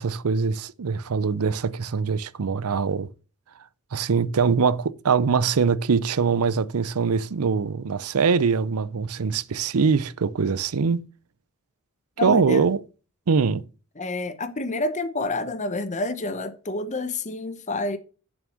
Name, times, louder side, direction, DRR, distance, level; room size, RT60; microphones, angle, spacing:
voice 1, 0.0-3.1 3.9-11.0 12.2-12.8 13.3-13.6, right 5 dB, 85° right, 0.6 m, -23 dB
voice 2, 12.2-12.6 14.0-18.0, left 2 dB, 35° left, 0.9 m, -28 dB
7.4 x 6.1 x 6.9 m
head